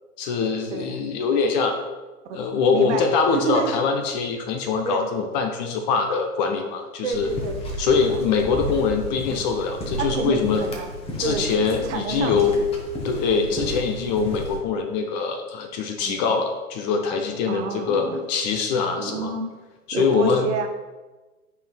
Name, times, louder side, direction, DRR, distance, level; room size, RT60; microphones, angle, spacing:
voice 1, 0.2-1.8 2.3-7.4 7.8-10.6 11.2-12.6 13.0-19.3 19.9-20.5, left 5 dB, 30° left, 5 dB, 0.6 m, -23 dB
voice 2, 2.7-3.1 3.3-3.7 4.8-5.0 7.0-8.2 10.0-10.9 11.2-12.6 13.5-13.6 16.0-16.3 17.5-18.2 19.0-19.4 19.9-20.7, right 5 dB, 50° right, 4 dB, 1.0 m, -29 dB
sound 1, 7.1-14.6, equal, 15° left, 1.0 m, -33 dB
8.9 x 5.4 x 2.3 m, 1.2 s
figure-of-eight pair, 105°, 45 cm